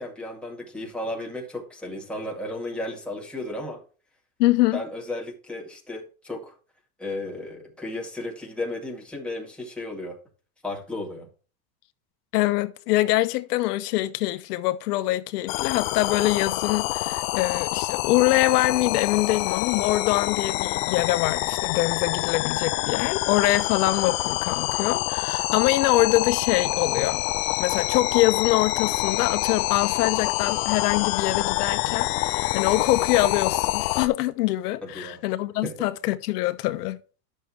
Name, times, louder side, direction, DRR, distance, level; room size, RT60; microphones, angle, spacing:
voice 1, 0.0-3.8 4.7-6.5 7.0-10.2 10.6-11.3 34.8-35.2 35.6-35.9, left 1 dB, ahead, 2.2 m, -34 dB
voice 2, 4.4-4.8 12.3-27.2 27.6-37.0, left 16 dB, 75° left, 1.0 m, -24 dB
sound 1, 15.5-34.1, left 17 dB, 55° left, 0.8 m, -26 dB
11.0 x 6.6 x 3.1 m
supercardioid pair, 140°, 48 cm